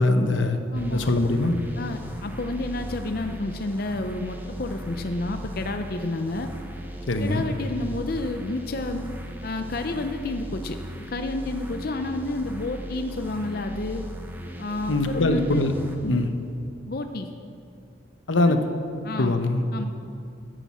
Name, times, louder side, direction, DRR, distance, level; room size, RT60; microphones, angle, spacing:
voice 1, 0.0-0.6 0.9-1.5 7.1-7.4 14.9-15.7 16.0-16.3 18.3-18.6 19.2-19.6, left 2 dB, 90° left, 7 dB, 1.0 m, -22 dB
voice 2, 0.7-1.1 1.8-6.5 7.2-9.0 9.4-14.0 14.6-15.6 16.8-17.3 18.5-18.6 19.0-19.4 19.7-19.9, left 2 dB, 50° left, 6 dB, 0.6 m, -30 dB
sound 1, 0.7-16.3, equal, 10° right, 1.0 m, -38 dB
10.5 x 9.1 x 7.4 m, 2.6 s
head